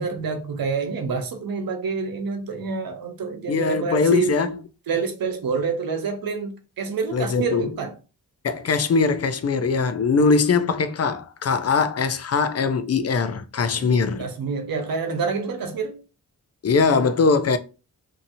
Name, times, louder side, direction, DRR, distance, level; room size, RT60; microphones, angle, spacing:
voice 1, 0.0-4.3 4.9-7.9 13.7-16.0, right 5 dB, 80° right, 0.8 m, -27 dB
voice 2, 3.5-4.6 7.1-7.7 8.4-14.3 16.6-17.6, left 4 dB, 45° left, 0.4 m, -21 dB
2.7 x 2.7 x 2.6 m
cardioid pair, 75°, 35 cm